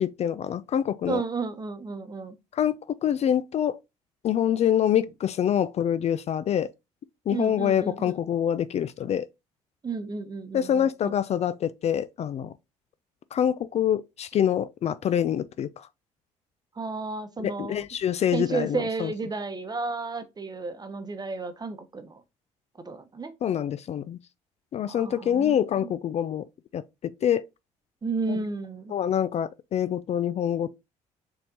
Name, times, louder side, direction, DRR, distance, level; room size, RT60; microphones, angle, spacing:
voice 1, 0.0-1.2 2.5-3.8 4.2-6.7 7.3-9.3 10.5-12.5 13.3-15.7 17.4-19.1 23.4-24.2 24.7-26.4 26.7-26.8 27.2-27.4 28.3-28.4 28.9-30.8, left 9 dB, 45° left, 0.4 m, -25 dB
voice 2, 1.1-2.4 7.3-8.2 9.8-11.1 16.8-17.8 18.3-22.2 22.8-23.3 24.9-25.9 28.0-28.9, right 4 dB, 25° right, 0.9 m, -32 dB
4.2 x 3.7 x 2.8 m
supercardioid pair, 65°, 15 cm